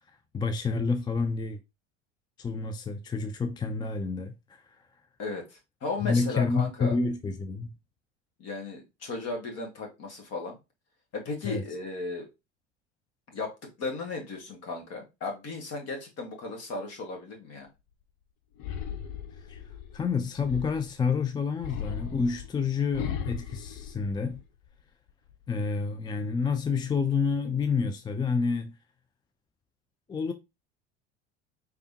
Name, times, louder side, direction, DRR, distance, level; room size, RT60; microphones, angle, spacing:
voice 1, 0.3-1.6 2.4-4.6 6.0-7.7 11.4-11.6 19.4-19.6 19.9-24.4 25.5-28.8 30.1-30.3, left 5 dB, 15° left, 0.4 m, -29 dB
voice 2, 5.2-6.9 8.4-10.6 11.1-12.3 13.3-17.7, left 3 dB, 45° left, 2.0 m, -35 dB
sound 1, 18.6-21.0 21.6-24.7 25.1-25.6, left 8 dB, 60° left, 0.9 m, -37 dB
4.6 x 3.5 x 2.8 m
hypercardioid pair, 75°, 35 cm